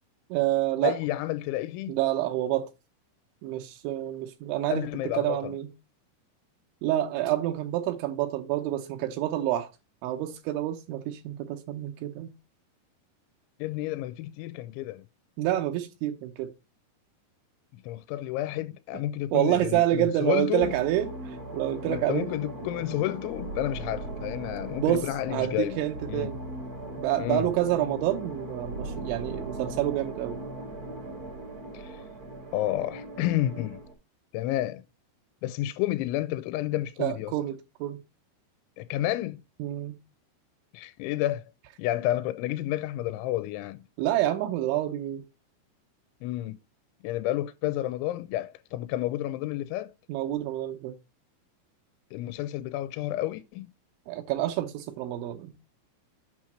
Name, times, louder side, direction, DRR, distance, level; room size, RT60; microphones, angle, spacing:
voice 1, 0.3-1.0 1.9-2.7 3.4-5.7 6.8-9.7 10.0-12.3 15.4-16.5 19.3-22.3 24.8-26.4 27.0-30.4 37.0-38.0 39.6-40.0 44.0-45.2 50.1-50.9 54.1-55.5, right 13 dB, 85° right, 3.2 m, -28 dB
voice 2, 0.8-2.0 4.7-5.5 13.6-15.1 17.7-20.8 21.8-25.8 26.1-26.3 27.2-27.5 31.7-32.0 32.5-33.8 34.3-34.8 35.4-37.3 38.8-39.4 40.7-41.4 41.8-43.8 46.2-46.6 47.0-49.9 52.1-53.7, left 14 dB, 90° left, 3.0 m, -30 dB
sound 1, 20.6-33.9, right 2 dB, 50° right, 1.0 m, -39 dB
8.8 x 6.3 x 4.2 m
omnidirectional pair, 5.4 m